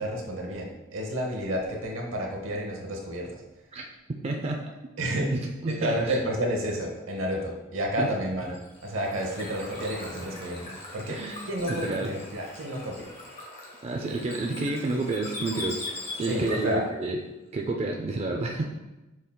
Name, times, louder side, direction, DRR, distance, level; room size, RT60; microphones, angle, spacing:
voice 1, 0.0-3.4 5.0-5.3 5.7-13.1 16.3-16.8, equal, 75° right, 0 dB, 0.9 m, -31 dB
voice 2, 4.2-4.6 5.1-5.9 8.0-8.1 11.1-11.4 11.7-12.1 13.8-15.8 16.2-17.2 17.5-18.6, right 2 dB, 30° right, 1 dB, 0.4 m, -29 dB
Bird / Water, 8.4-16.8, left 2 dB, 30° left, 1.1 m, -41 dB
6.3 x 3.6 x 2.2 m, 1.0 s
head